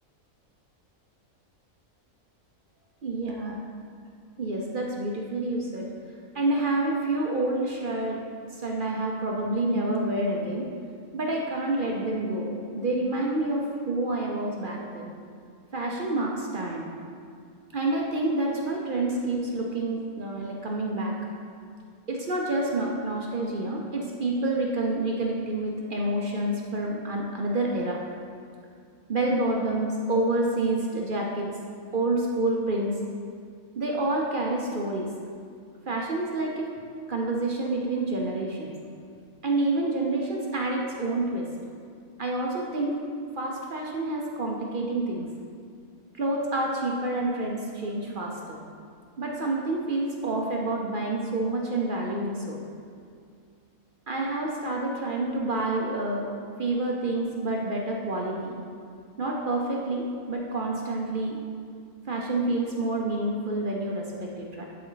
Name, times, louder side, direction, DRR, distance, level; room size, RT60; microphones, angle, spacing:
voice 1, 3.0-3.6 4.4-5.9 6.3-8.2 8.5-10.7 11.1-15.1 15.7-16.9 17.7-21.1 22.1-28.0 29.1-31.5 31.9-32.9 33.7-35.1 35.9-36.7 37.1-38.7 39.4-41.5 42.2-43.0 43.4-45.3 46.1-48.6 49.2-52.6 54.1-56.3 56.6-58.5 59.2-61.4 62.1-64.7, right 2 dB, 50° right, -1 dB, 0.7 m, -28 dB
11.0 x 4.3 x 3.9 m, 2.3 s
omnidirectional pair, 1.5 m